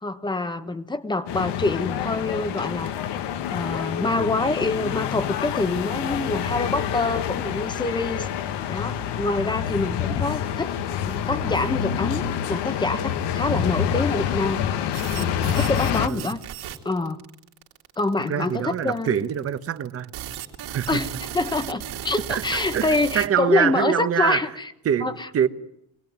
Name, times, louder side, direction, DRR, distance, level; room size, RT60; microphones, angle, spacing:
voice 1, 0.0-2.9 3.5-8.3 8.7-10.8 11.1-14.6 15.1-16.4 16.8-17.2 18.0-19.2 20.9-24.7 25.0-25.3, left 2 dB, 10° left, 1.1 m, -26 dB
sound 1, 1.3-16.1, left 9 dB, 85° left, 1.5 m, -27 dB
sound 2, 14.9-23.3, right 11 dB, 65° right, 2.8 m, -36 dB
voice 2, 18.3-20.1 20.7-21.0 22.3-22.4 22.7-24.5 24.8-25.5, right 9 dB, 35° right, 1.1 m, -24 dB
25.0 x 19.5 x 9.5 m
cardioid pair, 175°, 41 cm